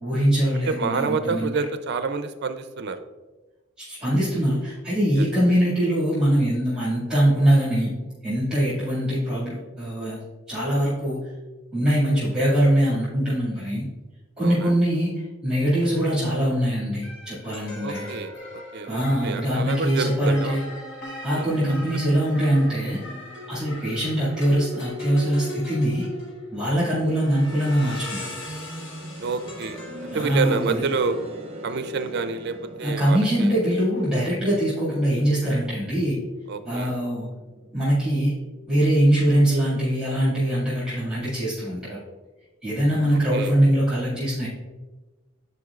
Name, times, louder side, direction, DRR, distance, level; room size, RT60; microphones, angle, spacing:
voice 1, 0.0-1.6 3.8-7.9 8.2-10.2 10.5-11.2 11.7-13.8 14.4-18.1 18.9-20.6 21.2-23.0 23.5-26.1 26.5-28.3 30.1-30.8 32.8-36.2 36.7-37.3 37.7-38.4 38.7-42.0 42.6-44.5, right 1 dB, 5° right, -10 dB, 1.9 m, -22 dB
voice 2, 0.6-3.0 5.2-5.3 14.4-14.7 17.8-20.6 21.3-21.5 29.2-31.2 31.6-33.5 36.5-36.9 43.3-43.5, right 4 dB, 50° right, 10 dB, 0.4 m, -28 dB
sound 1, 17.0-33.8, left 2 dB, 60° left, 1.4 m, -39 dB
sound 2, 28.4-39.2 39.5-39.6 40.5-40.6, right 2 dB, 30° right, 0.8 m, -41 dB
9.4 x 4.5 x 2.4 m, 1.2 s
head